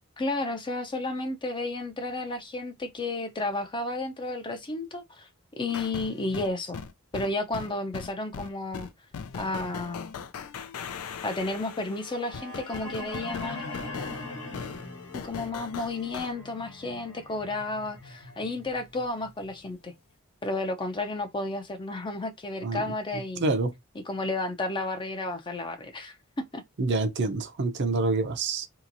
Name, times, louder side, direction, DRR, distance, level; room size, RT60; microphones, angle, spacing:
voice 1, 0.2-5.3 5.6-6.8 7.1-8.9 9.4-10.1 11.2-13.6 15.1-19.9 20.4-23.5 24.1-26.2 26.5-26.6, left 2 dB, 20° left, 0.5 m, -32 dB
sound 1, 5.7-16.3, left 6 dB, 90° left, 0.4 m, -40 dB
sound 2, 11.8-19.9, left 2 dB, 65° left, 1.1 m, -42 dB
voice 2, 22.6-23.7 26.8-28.7, right 3 dB, 55° right, 0.5 m, -27 dB
3.0 x 2.8 x 2.5 m
head